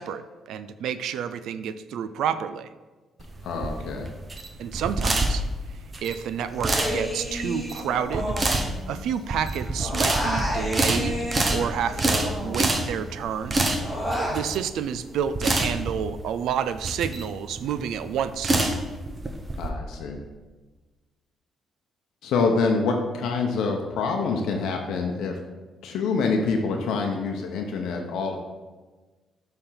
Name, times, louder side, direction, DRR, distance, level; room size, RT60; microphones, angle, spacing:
voice 1, 0.0-2.7 4.6-5.4 6.0-8.3 8.9-13.6 14.2-18.8, right 8 dB, 80° right, 12 dB, 0.4 m, -30 dB
sound 1, 3.2-19.7, right 2 dB, 30° right, 0.8 m, -27 dB
voice 2, 3.4-4.1 19.6-20.2 22.2-25.4 25.8-28.4, left 4 dB, 80° left, 2 dB, 0.7 m, -26 dB
Human voice, 6.5-9.2 9.4-12.9 13.3-14.4, equal, 5° right, 2.1 m, -31 dB
6.8 x 3.5 x 5.6 m, 1.3 s
cardioid pair, 90°, 0 cm